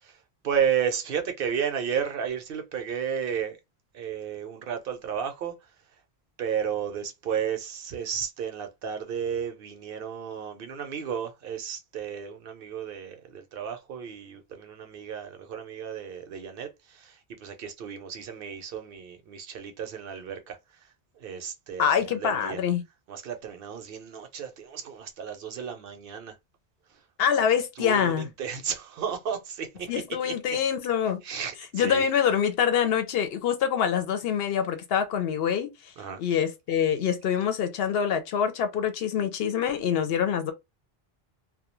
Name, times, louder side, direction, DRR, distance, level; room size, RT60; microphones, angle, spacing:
voice 1, 0.4-3.6 3.9-5.5 6.4-17.1 17.4-20.6 21.2-22.6 23.1-26.3 27.8-30.6 31.2-31.5 31.8-32.1 36.0-36.2, right 8 dB, 70° right, 0.8 m, -33 dB
voice 2, 21.8-22.8 27.2-28.3 29.9-31.2 31.7-35.7 36.2-40.5, left 8 dB, 75° left, 0.8 m, -25 dB
2.3 x 2.1 x 2.9 m
omnidirectional pair, 1.0 m